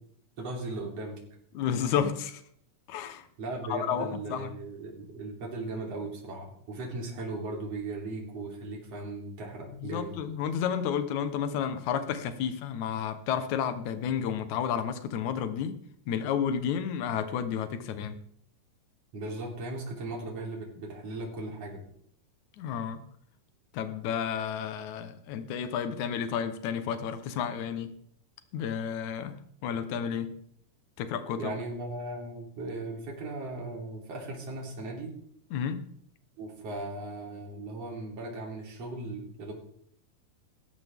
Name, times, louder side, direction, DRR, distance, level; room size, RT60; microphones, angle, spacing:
voice 1, 0.4-1.2 3.4-10.2 19.1-21.8 31.4-35.1 36.4-39.5, right 2 dB, 50° right, -1 dB, 4.4 m, -37 dB
voice 2, 1.5-2.4 2.9-3.3 3.7-4.5 9.8-15.8 16.1-18.2 22.6-23.0 23.7-27.9 28.5-29.4 29.6-30.4 31.0-31.5 35.5-35.9, left 8 dB, 70° left, 9 dB, 2.5 m, -31 dB
18.0 x 14.0 x 3.6 m, 0.66 s
omnidirectional pair, 3.6 m